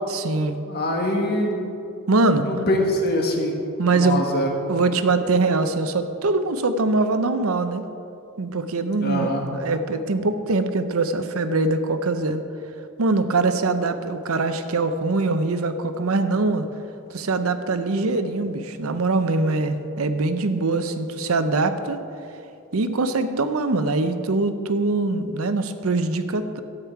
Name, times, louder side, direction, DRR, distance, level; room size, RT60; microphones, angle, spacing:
voice 1, 0.1-0.6 2.1-2.6 3.8-4.2 4.7-7.8 8.4-12.4 13.0-16.7 17.1-22.0 22.7-26.6, right 3 dB, 75° right, 10 dB, 0.7 m, -23 dB
voice 2, 0.7-1.7 2.4-3.6 3.9-4.5 9.0-9.4, left 1 dB, 45° left, 1 dB, 1.5 m, -23 dB
12.5 x 9.0 x 4.6 m, 2.7 s
head